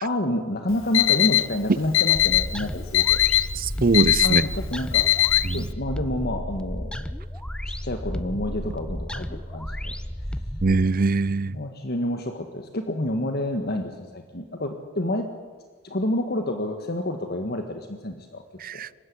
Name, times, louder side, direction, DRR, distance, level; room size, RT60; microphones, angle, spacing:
voice 1, 0.0-3.2 4.2-5.1 5.5-7.0 7.7-9.9 11.5-15.3 15.8-18.4, left 1 dB, 50° left, 6 dB, 1.7 m, -28 dB
Alarm, 0.7-5.7, left 14 dB, 65° left, 0.7 m, -21 dB
sound 1, 2.1-10.9, equal, 5° left, 0.9 m, -33 dB
voice 2, 3.6-4.4 5.4-5.7 10.6-11.5 18.6-18.9, right 3 dB, 45° right, 19 dB, 0.6 m, -22 dB
25.5 x 15.5 x 10.0 m, 1.5 s
head